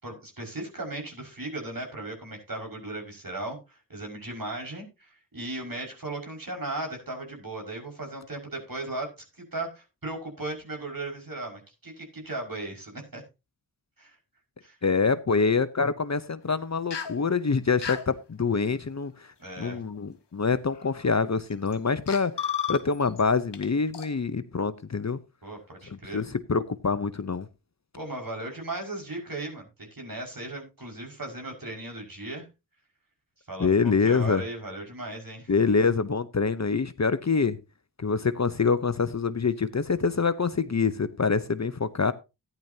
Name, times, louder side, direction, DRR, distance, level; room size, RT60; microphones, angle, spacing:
voice 1, 0.0-13.2 14.0-14.2 14.6-14.8 19.4-19.8 25.4-26.2 28.0-32.5 33.5-35.5, right 2 dB, 55° right, 5.7 m, -37 dB
voice 2, 14.8-19.3 19.6-25.2 26.1-27.5 33.6-34.4 35.5-37.6 38.0-42.1, left 5 dB, 40° left, 0.8 m, -25 dB
sound 1, 16.9-17.2 17.8-18.0 19.8-19.9 20.7-21.1 21.7-21.8 22.1-23.2 23.5-23.7 23.9-24.1, left 8 dB, 80° left, 1.3 m, -32 dB
14.5 x 10.5 x 2.8 m
wide cardioid pair, 50°, 41 cm